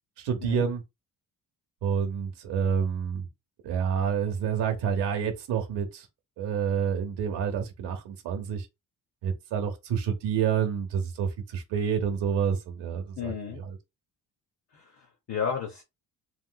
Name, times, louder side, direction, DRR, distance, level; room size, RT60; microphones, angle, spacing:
voice 1, 0.2-0.8 1.8-3.3 3.6-6.1 6.4-8.7 9.2-13.8, right 7 dB, 85° right, 0.8 m, -28 dB
voice 2, 13.2-13.6 14.7-15.8, left 7 dB, 40° left, 0.6 m, -33 dB
3.1 x 2.8 x 2.2 m
cardioid pair, 170°, 41 cm